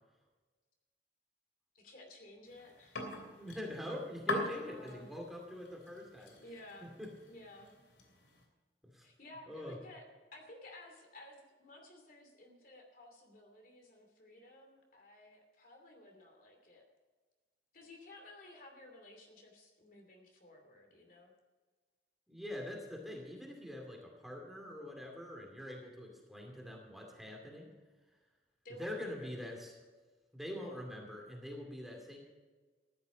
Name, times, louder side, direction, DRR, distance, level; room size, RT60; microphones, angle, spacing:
voice 1, 1.7-3.1 4.6-5.1 6.2-6.9 7.3-7.8 9.0-10.0 10.3-16.8 17.7-21.3 28.6-29.3, left 1 dB, 50° left, 2 dB, 2.7 m, -55 dB
sound 1, 2.5-8.4, left 2 dB, 80° left, 3.0 m, -44 dB
voice 2, 3.3-6.4 6.8-7.1 8.8-9.1 9.5-9.8 22.3-27.7 28.7-29.8 30.3-32.2, left 1 dB, ahead, 0 dB, 2.4 m, -44 dB
14.5 x 11.5 x 5.1 m, 1.3 s
head